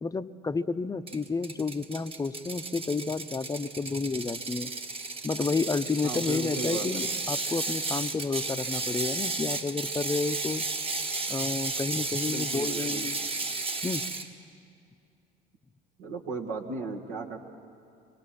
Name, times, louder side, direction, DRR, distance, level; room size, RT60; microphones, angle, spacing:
voice 1, 0.0-4.7 5.2-10.6 11.3-13.2 13.8-14.1, left 4 dB, 20° left, 11 dB, 0.7 m, -31 dB
Ratchet pawl, 1.1-14.3, right 3 dB, 30° right, 1.5 m, -33 dB
voice 2, 6.0-6.9 12.3-13.0 16.0-17.4, right 4 dB, 75° right, 1 dB, 2.1 m, -35 dB
25.5 x 19.5 x 5.9 m, 2.4 s
hypercardioid pair, 65°, 19 cm